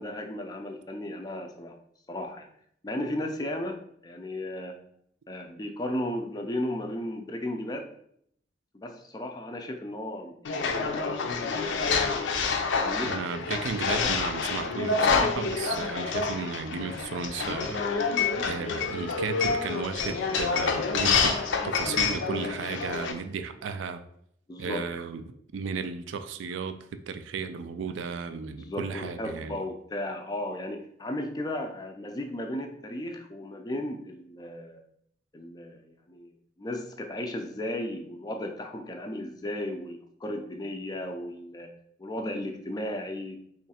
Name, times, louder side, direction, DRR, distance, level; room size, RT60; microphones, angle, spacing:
voice 1, 0.0-1.8 2.1-2.5 2.8-4.8 5.3-7.9 8.7-11.3 12.8-13.2 14.0-14.1 24.5-24.9 28.6-34.8 35.3-41.7 42.0-43.5, left 1 dB, 20° left, 5 dB, 0.3 m, -35 dB
sound 1, 10.4-23.1, left 5 dB, 85° left, 0.5 m, -28 dB
voice 2, 13.0-17.8 18.5-24.0 24.6-25.2 25.5-26.8 27.1-29.6, right 5 dB, 85° right, 9 dB, 0.3 m, -34 dB
3.1 x 2.3 x 4.1 m, 0.68 s
head